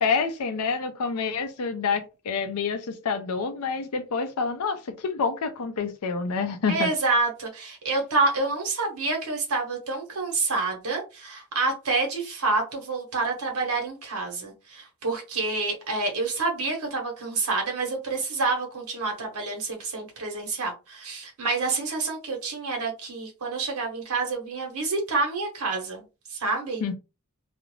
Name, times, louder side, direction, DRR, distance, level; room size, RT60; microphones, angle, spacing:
voice 1, 0.0-6.9 26.8-26.9, left 5 dB, 75° left, 0.5 m, -27 dB
voice 2, 6.7-26.0 26.3-26.8, right 3 dB, 80° right, 0.9 m, -28 dB
2.4 x 2.0 x 3.0 m
head